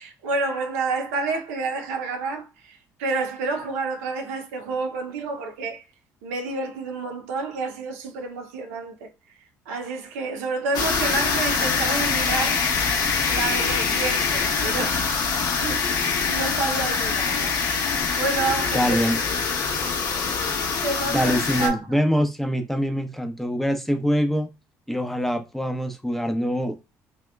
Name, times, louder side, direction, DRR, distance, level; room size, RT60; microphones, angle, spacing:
voice 1, 0.0-5.8 6.2-9.1 9.7-12.6 13.2-15.1 15.6-19.0 20.8-22.0, right 3 dB, 90° right, 0.6 m, -29 dB
sound 1, 10.7-21.7, left 5 dB, 60° left, 0.9 m, -24 dB
voice 2, 18.7-19.2 21.1-24.5 24.9-26.8, equal, 5° left, 0.6 m, -24 dB
2.8 x 2.2 x 2.2 m
hypercardioid pair, 65°, 8 cm